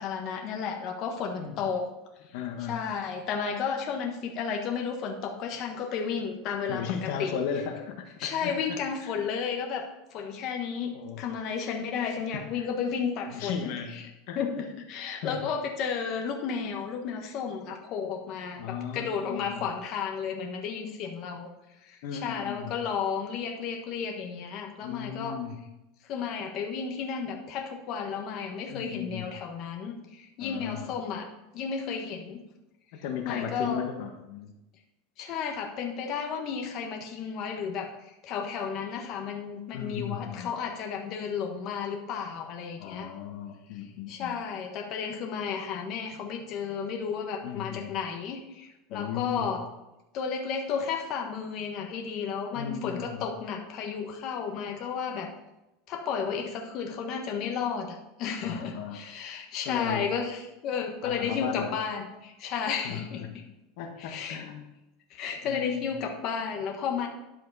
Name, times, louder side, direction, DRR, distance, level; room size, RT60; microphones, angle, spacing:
voice 1, 0.0-1.9 2.7-7.4 8.2-9.9 10.1-14.0 14.3-21.5 21.8-25.4 26.1-31.3 31.5-32.4 33.2-33.8 35.2-37.9 38.2-43.1 44.1-49.6 50.1-55.3 55.9-63.4 64.0-64.4 65.1-67.1, left 6 dB, 45° left, 2 dB, 1.3 m, -33 dB
voice 2, 2.3-2.8 6.7-9.2 10.9-11.2 12.3-12.7 13.3-14.0 14.3-14.4 14.9-15.5 18.6-19.7 22.0-22.8 24.8-25.6 28.7-29.3 30.4-30.9 33.0-34.5 39.7-40.5 42.8-44.4 47.4-47.9 48.9-49.6 52.5-53.3 58.4-59.0 59.6-60.1 61.0-61.7 62.8-63.3 63.8-64.7 65.4-65.9, left 8 dB, 65° left, 4 dB, 1.3 m, -36 dB
11.0 x 7.5 x 4.1 m, 0.94 s
supercardioid pair, 140°, 0 cm